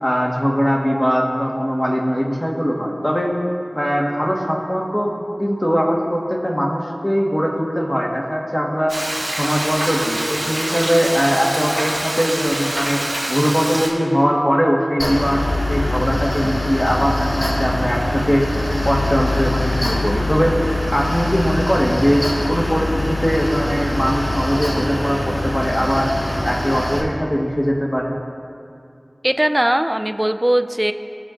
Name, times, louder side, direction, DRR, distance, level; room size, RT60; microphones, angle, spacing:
voice 1, 0.0-3.3 3.7-9.0 9.3-13.0 13.3-18.5 18.8-20.5 20.9-26.1 26.4-28.1, equal, 15° left, -2 dB, 1.5 m, -20 dB
Frying (food), 8.9-13.9, right 1 dB, 70° right, 2.1 m, -25 dB
Mechanical fan, 15.0-27.0, left 1 dB, 35° left, 2.0 m, -23 dB
voice 2, 29.2-30.9, right 1 dB, 15° right, 8 dB, 0.4 m, -19 dB
21.0 x 7.2 x 2.5 m, 2.4 s
wide cardioid pair, 50°, 0 cm